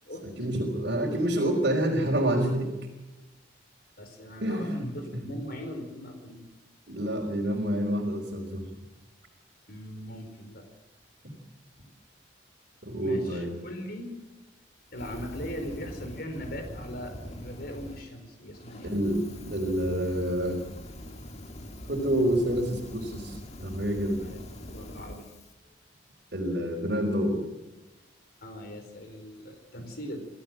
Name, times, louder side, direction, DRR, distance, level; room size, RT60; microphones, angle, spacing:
voice 1, 0.2-2.7 4.4-4.8 5.1-5.2 6.9-8.7 11.2-11.3 12.8-13.5 18.8-20.6 21.9-24.2 26.3-27.4, right 1 dB, 55° right, -3 dB, 4.3 m, -28 dB
voice 2, 4.0-6.4 9.7-10.6 13.0-14.2 14.9-19.0 24.2-25.3 28.4-30.2, equal, 50° left, 6 dB, 4.5 m, -40 dB
Fire, 14.9-18.1 18.5-25.5, left 1 dB, 35° left, 1.9 m, -43 dB
27.0 x 16.0 x 7.6 m, 1.1 s
head